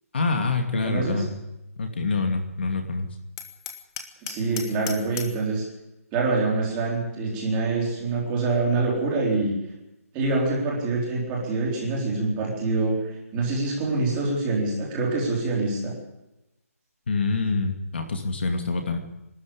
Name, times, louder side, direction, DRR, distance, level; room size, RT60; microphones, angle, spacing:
voice 1, 0.1-1.3 1.8-3.1 17.1-19.0, left 3 dB, 45° left, 4 dB, 2.5 m, -26 dB
voice 2, 0.8-1.3 4.2-5.7 6.1-9.6 10.1-16.0, right 3 dB, 10° right, -3 dB, 3.6 m, -25 dB
Hammer, 3.4-5.5, left 8 dB, 15° left, 1.0 m, -37 dB
23.5 x 13.0 x 8.6 m, 0.93 s
hypercardioid pair, 180°, 8 cm